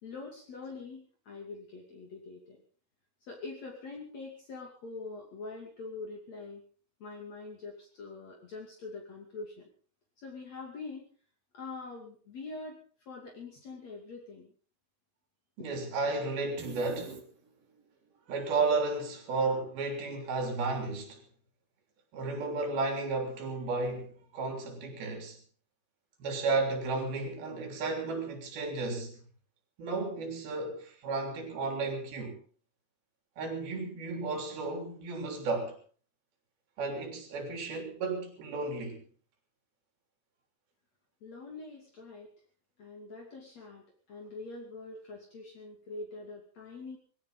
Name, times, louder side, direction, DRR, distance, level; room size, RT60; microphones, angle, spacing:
voice 1, 0.0-2.6 3.3-6.6 7.0-9.7 10.2-11.1 11.5-12.8 13.1-14.5 41.2-42.3 42.8-47.0, left 3 dB, 45° left, 3.7 m, -44 dB
voice 2, 15.6-17.2 18.3-21.2 22.1-25.4 26.2-29.2 29.8-32.4 33.4-35.8 36.8-39.0, right 3 dB, 75° right, 5.3 m, -33 dB
sound 1, 16.6-17.8, right 5 dB, 45° right, 2.7 m, -45 dB
21.0 x 16.5 x 4.0 m
omnidirectional pair, 4.3 m